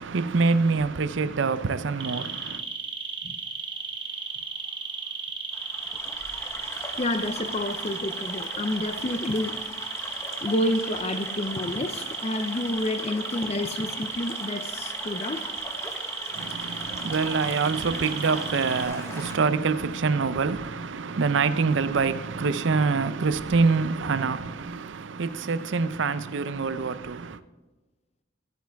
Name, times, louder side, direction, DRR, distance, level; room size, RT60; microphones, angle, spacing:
voice 1, 0.0-2.6 16.3-27.4, right 4 dB, 70° right, 0.5 m, -25 dB
sound 1, 2.0-18.8, right 5 dB, 25° right, 1.1 m, -34 dB
Stream / Gurgling / Trickle dribble, 5.5-19.3, left 1 dB, 15° left, 1.0 m, -40 dB
voice 2, 7.0-9.6 10.4-15.5, left 1 dB, 35° left, 0.5 m, -29 dB
15.0 x 9.2 x 3.5 m
head